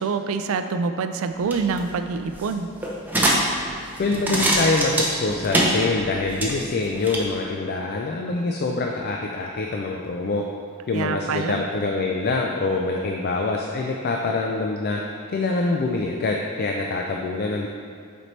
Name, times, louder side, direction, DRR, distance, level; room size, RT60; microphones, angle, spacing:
voice 1, 0.0-2.7 10.9-11.6, right 5 dB, 65° right, 8 dB, 0.4 m, -26 dB
sound 1, 1.3-7.2, right 1 dB, 10° right, 0.7 m, -25 dB
voice 2, 4.0-10.4 10.9-15.0 15.3-17.7, left 3 dB, 45° left, 1 dB, 0.4 m, -25 dB
8.0 x 4.3 x 3.2 m, 2.3 s
head